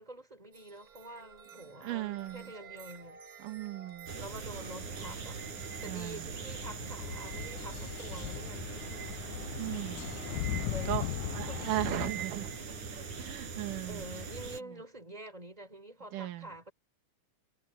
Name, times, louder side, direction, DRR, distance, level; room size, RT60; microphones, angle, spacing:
voice 1, 0.0-3.2 4.1-5.4 5.8-9.5 10.6-11.9 13.9-16.7, right 1 dB, 10° right, 5.7 m, -47 dB
sound 1, 0.5-12.6, right 8 dB, 40° right, 1.5 m, -50 dB
voice 2, 1.8-2.4 3.4-4.1 5.9-6.2 9.6-10.1 10.5-11.1 11.3-12.5 12.9-14.0 16.1-16.5, right 15 dB, 85° right, 2.7 m, -37 dB
sound 2, 4.1-14.6, right 4 dB, 70° right, 6.8 m, -41 dB
sound 3, 6.6-12.1, left 18 dB, 80° left, 1.7 m, -39 dB
omnidirectional pair, 3.6 m